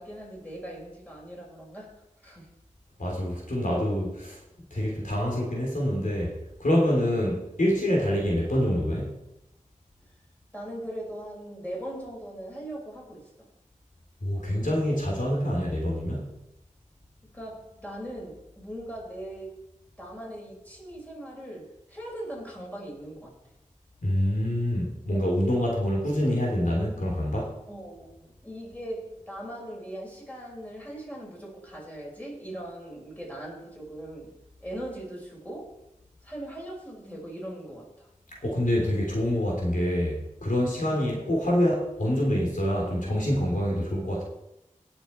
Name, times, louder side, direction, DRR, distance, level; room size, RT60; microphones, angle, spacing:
voice 1, 0.0-1.9 2.2-2.5 10.5-13.3 17.3-19.6 20.0-23.3 27.7-34.3 34.6-35.7 36.2-38.1, right 1 dB, 10° left, -3 dB, 5.4 m, -40 dB
voice 2, 3.0-4.4 4.7-6.3 6.6-9.1 14.2-16.3 24.0-27.5 38.4-44.2, equal, 80° left, -2 dB, 3.4 m, -26 dB
18.0 x 7.1 x 4.5 m, 0.90 s
wide cardioid pair, 50°, 13 cm